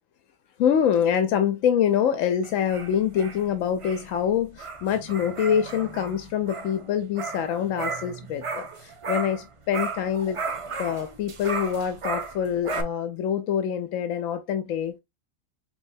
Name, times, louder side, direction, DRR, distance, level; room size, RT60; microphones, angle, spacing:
voice 1, 0.6-10.4 10.8-15.0, left 8 dB, 80° left, 1.0 m, -25 dB
sound 1, 2.4-9.5 9.7-12.8, right 4 dB, 50° right, 0.4 m, -35 dB
5.4 x 3.2 x 2.6 m
omnidirectional pair, 1.4 m